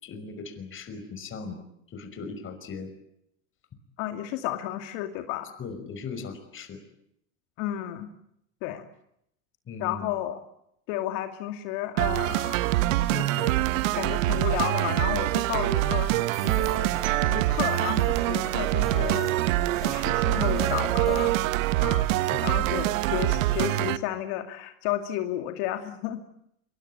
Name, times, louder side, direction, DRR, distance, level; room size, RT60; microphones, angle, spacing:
voice 1, 0.0-1.6 1.9-2.9 5.6-6.8 9.7-10.1 22.3-22.6, left 4 dB, 30° left, 7 dB, 5.6 m, -38 dB
voice 2, 4.0-5.5 7.6-8.1 8.6-8.9 9.8-10.4 10.9-12.6 13.1-13.6 14.0-19.5 19.8-21.4 21.8-22.1 22.4-26.2, left 13 dB, 60° left, 6 dB, 2.6 m, -32 dB
sound 1, 12.0-24.0, right 16 dB, 70° right, 1.4 m, -25 dB
sound 2, 16.2-21.3, right 1 dB, ahead, 4.3 m, -41 dB
25.5 x 23.5 x 8.8 m, 0.75 s
supercardioid pair, 115°, 40 cm